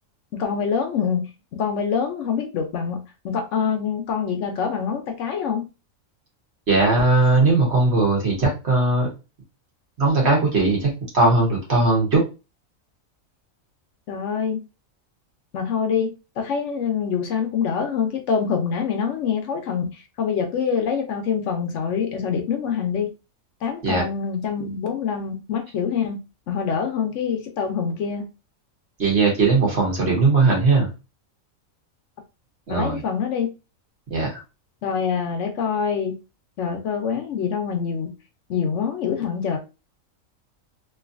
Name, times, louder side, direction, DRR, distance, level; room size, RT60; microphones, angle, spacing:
voice 1, 0.3-5.6 14.1-14.6 15.5-23.1 23.6-26.2 26.5-28.3 32.7-33.5 34.8-36.2 36.6-38.1 38.5-39.6, left 6 dB, 65° left, 0.9 m, -25 dB
voice 2, 6.7-9.1 10.0-12.2 23.8-24.0 29.0-30.9 32.7-33.0 34.1-34.4, right 3 dB, 55° right, 1.4 m, -19 dB
3.1 x 2.6 x 2.4 m
omnidirectional pair, 1.4 m